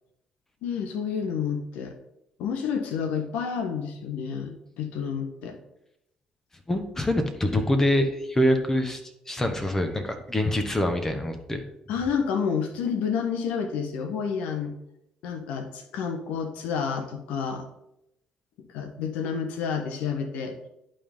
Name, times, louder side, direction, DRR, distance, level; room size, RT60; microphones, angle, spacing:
voice 1, 0.6-2.0 2.4-5.6 11.9-14.7 15.2-17.7 18.6-20.5, left 6 dB, 75° left, 7 dB, 1.1 m, -29 dB
voice 2, 6.7-9.0 9.3-11.6, left 1 dB, 20° left, 6 dB, 1.2 m, -25 dB
11.0 x 3.8 x 3.7 m, 0.83 s
hypercardioid pair, 60°, 2 cm